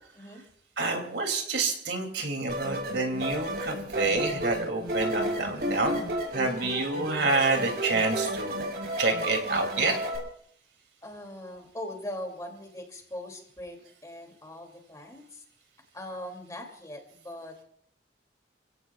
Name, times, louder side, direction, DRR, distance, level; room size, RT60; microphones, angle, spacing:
voice 1, 0.8-6.0 6.3-8.7 9.0-9.9, right 3 dB, 80° right, 3 dB, 2.9 m, -28 dB
sound 1, 2.5-10.2, right 1 dB, 65° right, 5.1 m, -32 dB
voice 2, 11.0-15.4 15.9-17.6, left 1 dB, 20° left, 2 dB, 2.8 m, -41 dB
28.5 x 16.5 x 2.4 m, 0.63 s
head